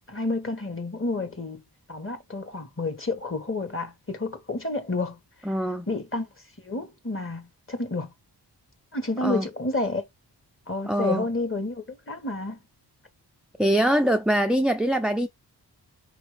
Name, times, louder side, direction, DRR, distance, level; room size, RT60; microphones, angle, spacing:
voice 1, 0.1-1.6 1.9-5.2 5.9-6.3 6.6-8.1 8.9-10.0 10.7-12.6, left 2 dB, 30° left, 1.5 m, -30 dB
voice 2, 5.5-5.9 9.2-9.5 10.9-11.2 13.6-15.3, right 1 dB, ahead, 0.5 m, -23 dB
4.6 x 2.9 x 3.3 m
cardioid pair, 45°, 41 cm